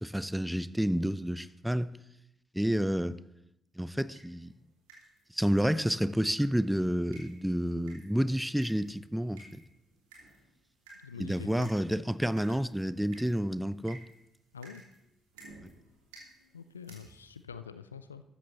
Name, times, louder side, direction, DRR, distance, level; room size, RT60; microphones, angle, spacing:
voice 1, 0.0-1.9 2.5-3.2 3.8-4.5 5.3-9.4 11.2-14.0, equal, 5° right, 0.6 m, -29 dB
sound 1, 4.1-17.4, right 2 dB, 75° right, 3.2 m, -56 dB
voice 2, 11.0-11.7 14.5-14.8 16.5-18.2, left 6 dB, 85° left, 0.4 m, -45 dB
14.0 x 13.5 x 3.0 m
figure-of-eight pair, 45°, 0 cm